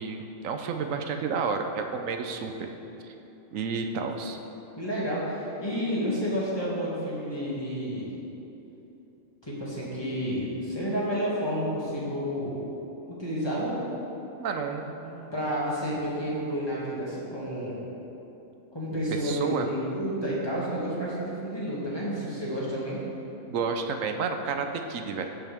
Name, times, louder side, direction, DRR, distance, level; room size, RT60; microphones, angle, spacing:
voice 1, 0.0-2.7 3.0-3.1 3.5-4.4 14.4-15.4 18.9-19.7 23.5-25.3, right 5 dB, 75° right, 5 dB, 1.1 m, -31 dB
voice 2, 4.8-8.1 9.4-12.6 13.1-13.8 15.3-17.8 18.7-23.0, equal, 20° left, -8 dB, 2.3 m, -30 dB
16.5 x 5.7 x 3.5 m, 3.0 s
omnidirectional pair, 1.4 m